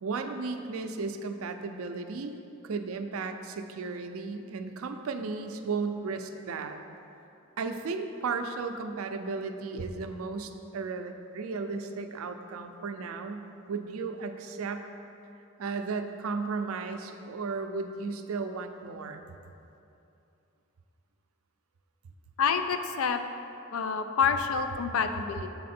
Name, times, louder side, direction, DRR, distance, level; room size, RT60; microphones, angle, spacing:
voice 1, 0.0-2.4 2.6-6.8 7.6-14.9 15.6-19.3, right 4 dB, 85° right, 7 dB, 0.4 m, -35 dB
voice 2, 22.4-23.2 23.7-25.5, left 6 dB, 80° left, 8 dB, 0.4 m, -27 dB
7.4 x 4.1 x 4.2 m, 2.7 s
head